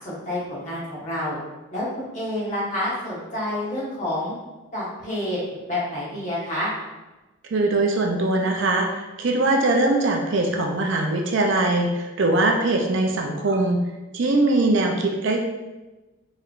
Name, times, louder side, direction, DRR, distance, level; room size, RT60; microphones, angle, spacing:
voice 1, 0.0-1.4 1.7-4.3 4.7-6.7, left 1 dB, 35° left, -7 dB, 1.3 m, -28 dB
voice 2, 7.5-13.8 14.1-15.4, right 2 dB, 55° right, 2 dB, 0.5 m, -21 dB
4.6 x 3.2 x 2.5 m, 1.1 s
head